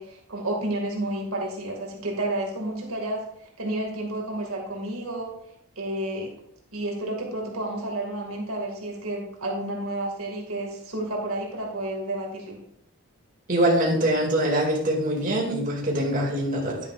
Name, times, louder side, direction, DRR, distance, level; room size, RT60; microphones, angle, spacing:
voice 1, 0.0-3.3 3.6-5.3 5.8-6.3 6.7-12.6, right 1 dB, 75° right, -1 dB, 2.2 m, -31 dB
voice 2, 13.5-16.8, right 1 dB, 35° right, -2 dB, 2.4 m, -23 dB
10.5 x 10.0 x 2.5 m, 0.75 s
head